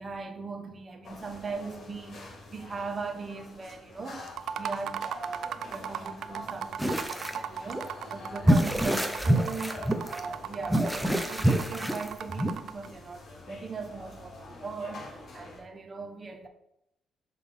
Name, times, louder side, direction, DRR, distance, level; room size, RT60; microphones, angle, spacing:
voice 1, 0.0-4.3 4.6-16.5, right 4 dB, 35° right, 0.9 m, -39 dB
sound 1, 1.0-15.6, left 2 dB, 55° left, 2.4 m, -47 dB
sound 2, 4.3-12.9, right 8 dB, 70° right, 0.4 m, -37 dB
sound 3, 6.8-7.4 7.7-7.8 8.4-10.2 10.7-12.5, equal, ahead, 0.7 m, -26 dB
5.9 x 3.5 x 5.5 m
cardioid pair, 90°, 0 cm